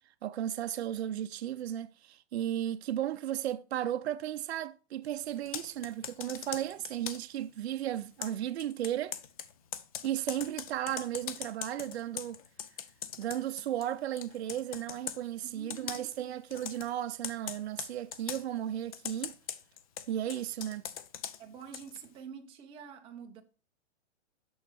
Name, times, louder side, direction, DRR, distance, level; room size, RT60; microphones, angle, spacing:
voice 1, 0.2-9.2 10.0-12.4 13.2-19.4 20.1-20.8, right 11 dB, 65° right, 0.6 m, -35 dB
Computer keyboard, 5.4-7.4 8.2-13.9 14.2-15.2 15.7-16.2 16.5-16.9 17.2-18.4 18.9-22.1, left 9 dB, 30° left, 0.6 m, -41 dB
voice 2, 15.4-15.9 21.4-23.4, right 6 dB, 15° right, 0.9 m, -47 dB
7.9 x 6.3 x 5.8 m
hypercardioid pair, 170°, 35 cm